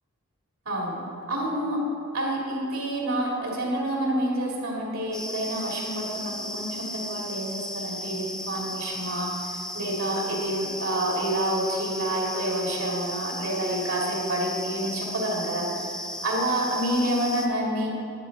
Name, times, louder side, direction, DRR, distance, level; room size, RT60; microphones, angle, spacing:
voice 1, 0.7-1.0 1.3-1.9 2.1-15.9 16.2-17.9, right 1 dB, 80° right, -3 dB, 2.6 m, -28 dB
sound 1, 5.1-17.5, equal, 5° left, 0.6 m, -35 dB
11.5 x 9.0 x 4.0 m, 2.9 s
head